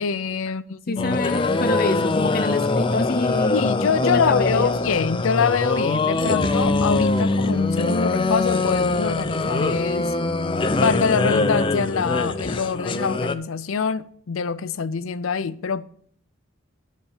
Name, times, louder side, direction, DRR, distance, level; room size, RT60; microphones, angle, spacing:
voice 1, 0.0-1.2 3.5-10.1 10.7-15.8, left 6 dB, 85° left, 0.5 m, -25 dB
voice 2, 0.9-3.6 4.0-4.9, left 3 dB, 45° left, 0.9 m, -26 dB
sound 1, 1.0-13.3, left 2 dB, 25° left, 0.5 m, -23 dB
11.5 x 4.2 x 7.0 m
head